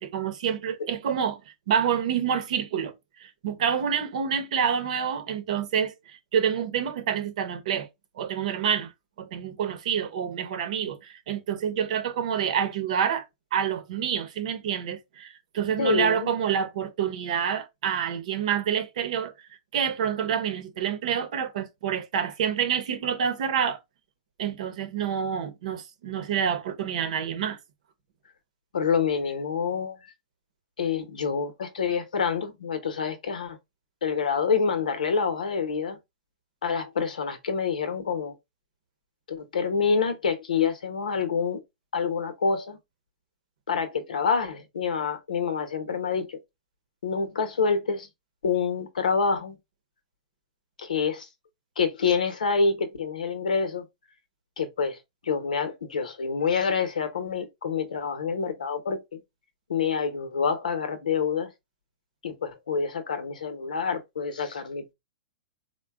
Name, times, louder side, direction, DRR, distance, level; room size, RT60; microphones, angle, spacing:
voice 1, 0.0-2.9 3.2-7.9 8.2-8.9 9.2-13.2 13.5-19.3 19.7-23.8 24.4-27.6, right 8 dB, 65° right, 0.8 m, -27 dB
voice 2, 15.8-16.3 28.7-30.0 30.8-33.6 34.0-36.0 36.6-38.3 39.3-41.6 41.9-42.8 43.7-46.4 47.0-48.1 48.4-49.6 50.8-51.3 51.8-53.8 54.6-55.0 55.2-59.2 59.7-61.5 62.2-64.9, left 5 dB, 90° left, 0.9 m, -27 dB
3.8 x 2.2 x 3.4 m
hypercardioid pair, 135°, 4 cm